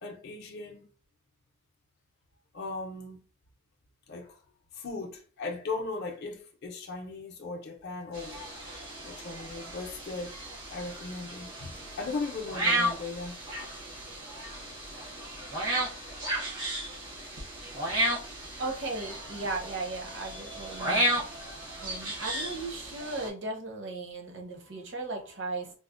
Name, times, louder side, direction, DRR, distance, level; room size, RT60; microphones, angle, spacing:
voice 1, 0.0-0.9 2.5-3.2 4.1-4.4 4.7-8.4 9.0-10.4 10.7-13.4, left 3 dB, 50° left, 0.5 m, -37 dB
sound 1, 8.1-23.3, right 1 dB, 75° right, 1.0 m, -34 dB
voice 2, 18.6-21.2 21.8-25.8, right 3 dB, 55° right, 0.8 m, -36 dB
4.0 x 2.0 x 2.4 m
head